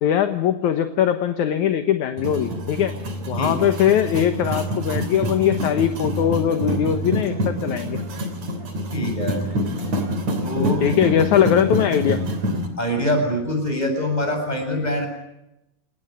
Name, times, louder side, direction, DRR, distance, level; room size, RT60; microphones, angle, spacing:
voice 1, 0.0-2.9 3.3-8.0 10.8-12.2, left 10 dB, 65° left, 8 dB, 2.3 m, -21 dB
sound 1, 2.2-12.7, equal, 50° right, 4.2 m, -26 dB
voice 2, 8.9-9.4 10.4-10.8 12.8-15.1, equal, 10° left, 3 dB, 7.4 m, -24 dB
29.0 x 18.5 x 9.2 m, 0.88 s
omnidirectional pair, 4.3 m